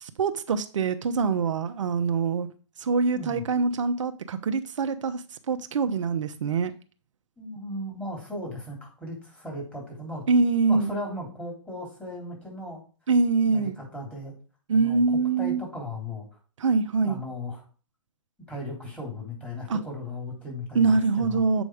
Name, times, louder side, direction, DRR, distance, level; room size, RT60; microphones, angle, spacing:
voice 1, 0.2-2.5 2.8-6.7 10.3-10.9 13.1-13.8 14.7-15.6 16.6-17.2 19.7-19.8 20.7-21.6, right 4 dB, 75° right, 0.8 m, -24 dB
voice 2, 7.4-10.2 10.6-12.8 13.4-14.3 14.7-16.3 17.0-17.6 18.5-21.4, left 1 dB, 5° left, 3.6 m, -37 dB
7.9 x 5.1 x 4.9 m
hypercardioid pair, 135°, 16 cm